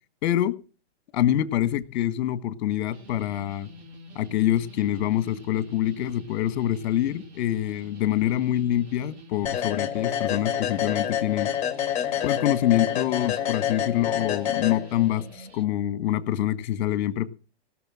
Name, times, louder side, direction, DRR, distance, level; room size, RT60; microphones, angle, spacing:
voice 1, 0.2-0.6 1.1-3.7 4.1-11.5 12.2-17.3, left 12 dB, 45° left, 12 dB, 1.5 m, -25 dB
sound 1, 2.9-15.6, right 2 dB, 75° right, 2.5 m, -47 dB
sound 2, 9.5-15.3, left 10 dB, 20° left, 2.3 m, -28 dB
18.0 x 6.3 x 7.5 m, 0.36 s
hypercardioid pair, 150°, 32 cm